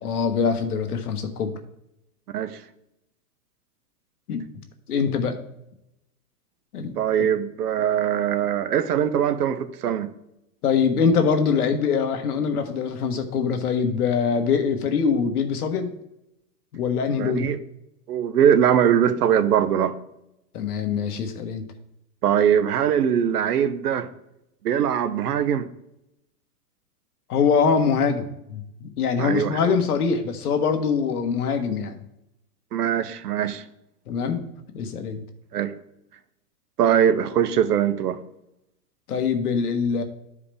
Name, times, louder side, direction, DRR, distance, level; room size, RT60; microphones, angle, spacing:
voice 1, 0.0-1.6 4.3-4.4 4.9-5.4 6.7-6.9 10.6-15.9 16.7-17.5 20.5-21.6 27.3-32.0 34.1-34.5 34.7-35.2 39.1-40.0, left 6 dB, 70° left, 1.5 m, -23 dB
voice 2, 7.0-10.1 17.2-17.6 18.1-20.0 22.2-24.1 24.6-25.7 29.2-29.7 32.7-33.6 35.5-35.7 36.8-38.2, right 9 dB, 75° right, 1.0 m, -21 dB
12.5 x 4.9 x 3.4 m
supercardioid pair, 180°, 47 cm